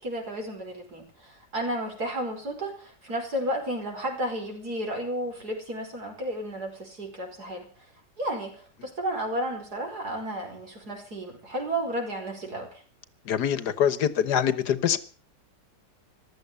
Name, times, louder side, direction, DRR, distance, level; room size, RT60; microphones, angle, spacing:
voice 1, 0.0-7.7 8.2-12.8, right 1 dB, 60° right, 5.5 m, -32 dB
voice 2, 13.3-15.0, left 8 dB, 70° left, 1.6 m, -24 dB
15.0 x 12.5 x 6.8 m
omnidirectional pair, 1.9 m